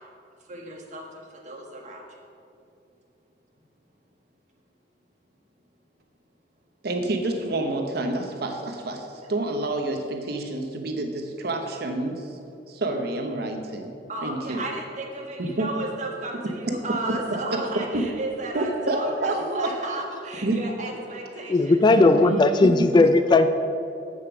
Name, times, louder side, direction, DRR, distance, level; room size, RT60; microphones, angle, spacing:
voice 1, 0.5-1.0 1.4-2.0 14.1-22.1, right 2 dB, 40° right, 1.4 m, -33 dB
voice 2, 6.8-12.3 12.7-13.9 14.2-14.6 15.4-15.7 16.7-16.8 17.5-17.6 17.9-18.2 18.5-19.7 20.4-20.7 21.9-22.0 22.3-22.4 22.9-23.0, right 2 dB, 60° right, 0.9 m, -28 dB
voice 3, 21.5-23.5, left 2 dB, 25° left, 0.3 m, -17 dB
7.8 x 7.3 x 5.9 m
head